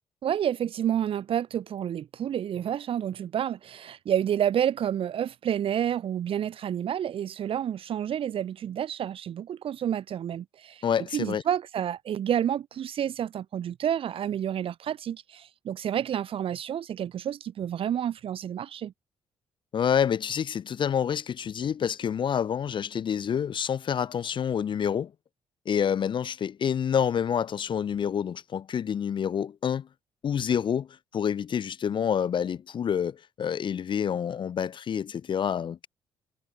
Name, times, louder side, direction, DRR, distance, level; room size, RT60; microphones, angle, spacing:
voice 1, 0.2-10.8 11.1-18.9, right 10 dB, 40° right, 0.5 m, -29 dB
voice 2, 10.8-11.4 19.7-25.1 25.7-29.9 30.2-30.9 31.1-35.9, left 8 dB, 35° left, 0.5 m, -28 dB
figure-of-eight pair, 45°, 14 cm